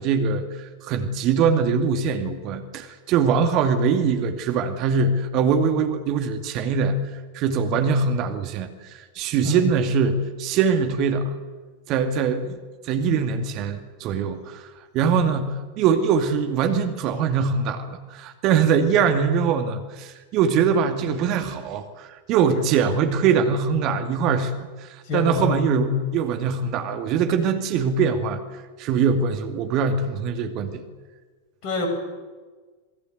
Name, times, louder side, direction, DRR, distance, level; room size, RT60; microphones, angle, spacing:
voice 1, 0.0-7.1 7.3-11.3 11.9-12.6 12.8-14.7 14.9-28.4 28.8-30.8, right 6 dB, 40° right, 7 dB, 2.4 m, -22 dB
voice 2, 25.0-26.1 31.6-31.9, left 6 dB, 40° left, 4 dB, 7.9 m, -26 dB
27.5 x 21.5 x 8.0 m, 1.4 s
figure-of-eight pair, 90°, 0 cm